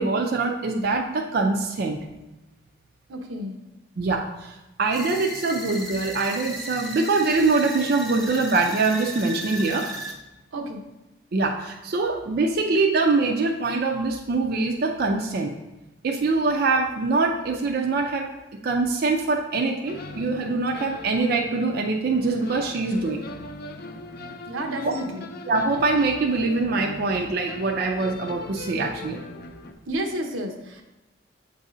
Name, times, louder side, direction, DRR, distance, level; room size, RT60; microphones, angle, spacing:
voice 1, 0.0-2.0 4.0-9.9 11.3-15.5 16.0-23.3 24.8-24.9 25.5-29.2, right 3 dB, 50° right, 2 dB, 0.4 m, -24 dB
voice 2, 3.1-3.6 10.5-10.8 24.4-25.3 29.9-30.8, right 1 dB, 90° right, 3 dB, 0.8 m, -31 dB
sound 1, 4.9-10.1, right 1 dB, ahead, 0.7 m, -35 dB
sound 2, 19.8-29.7, left 2 dB, 50° left, 0.5 m, -40 dB
7.3 x 2.7 x 4.9 m, 1.0 s
head